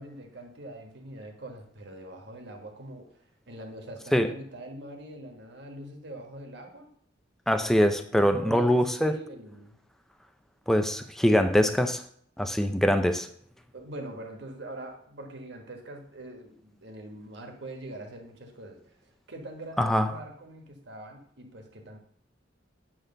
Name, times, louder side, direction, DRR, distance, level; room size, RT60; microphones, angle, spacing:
voice 1, 0.0-6.9 8.1-9.8 13.7-22.0, right 1 dB, 65° right, 3 dB, 1.4 m, -43 dB
voice 2, 7.5-9.2 10.7-12.0 12.4-13.3 19.8-20.1, equal, ahead, 7 dB, 0.4 m, -23 dB
8.9 x 3.3 x 6.6 m, 0.64 s
head